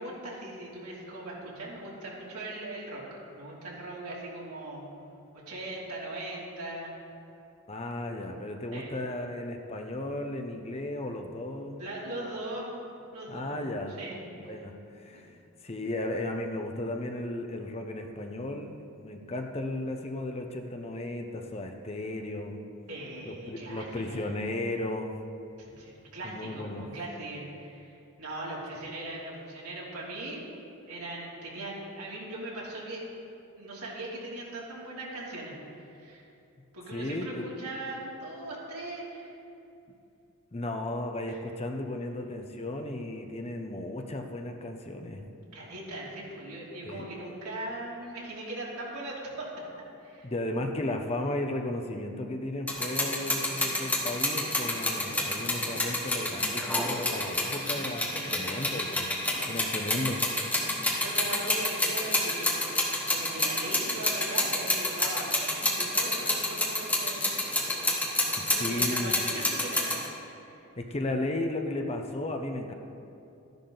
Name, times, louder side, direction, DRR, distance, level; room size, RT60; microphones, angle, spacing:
voice 1, 0.0-4.8 5.5-6.9 8.7-9.0 11.8-12.8 13.1-13.6 14.0-14.5 15.1-15.2 22.9-24.3 25.6-30.4 30.9-33.1 33.6-35.5 35.9-36.2 36.7-39.3 41.3-41.4 45.5-49.5 50.0-50.3 58.1-58.7 59.2-59.5 61.0-62.7 63.1-67.3 68.5-70.0 70.4-70.7, right 1 dB, 90° right, -5 dB, 2.9 m, -39 dB
voice 2, 7.7-11.8 13.3-14.0 14.4-15.3 15.6-22.6 23.3-25.2 26.2-26.9 36.9-37.5 40.5-45.3 46.8-47.3 50.2-59.1 59.4-60.3 68.4-69.2 70.8-72.7, left 1 dB, 25° left, 4 dB, 0.7 m, -35 dB
sound 1, 52.7-70.1, left 1 dB, 5° left, 1.3 m, -28 dB
13.5 x 10.5 x 3.9 m, 2.7 s
head